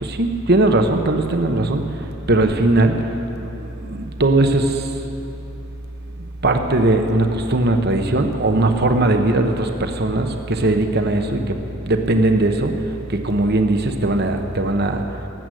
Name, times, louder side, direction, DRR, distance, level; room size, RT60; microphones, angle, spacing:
voice 1, 0.0-1.9 2.3-3.1 3.4-4.9 6.2-11.6 11.8-12.7 13.1-15.0, right 2 dB, 50° right, 5 dB, 1.0 m, -19 dB
18.5 x 7.9 x 7.8 m, 3.0 s
head